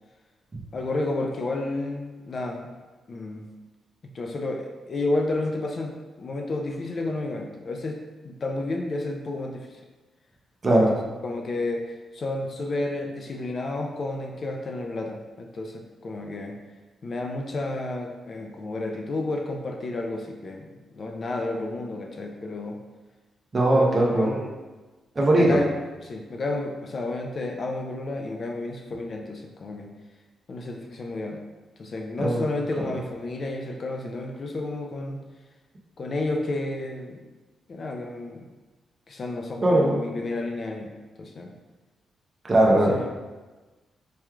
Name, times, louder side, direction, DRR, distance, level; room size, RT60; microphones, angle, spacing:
voice 1, 0.7-2.7 3.1-3.5 4.1-8.0 8.2-9.8 10.7-11.0 11.2-16.6 17.0-22.8 23.7-24.5 25.3-25.7 26.0-29.9 30.5-31.4 31.8-35.2 36.0-37.3 37.7-38.5 39.1-40.9 41.2-41.6 42.9-43.1, left 2 dB, 40° left, 2 dB, 0.4 m, -31 dB
voice 2, 23.5-24.3 25.2-25.6 32.2-32.4 39.6-40.0 42.4-43.1, right 1 dB, 30° right, -2 dB, 0.7 m, -20 dB
4.5 x 3.0 x 2.4 m, 1.2 s
cardioid pair, 125°, 0 cm